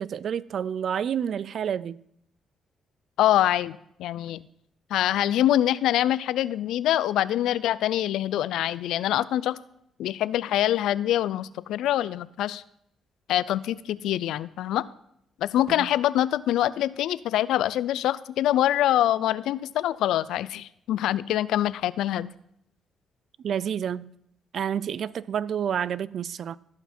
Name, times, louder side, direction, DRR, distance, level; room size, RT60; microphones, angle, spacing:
voice 1, 0.0-2.0 15.7-15.9 23.4-24.1 24.5-26.6, right 8 dB, 60° right, 0.4 m, -29 dB
voice 2, 3.2-4.4 4.9-9.6 10.0-12.6 13.3-14.9 15.4-22.3, left 12 dB, 85° left, 0.4 m, -25 dB
15.5 x 5.9 x 4.3 m
cardioid pair, 90°, 0 cm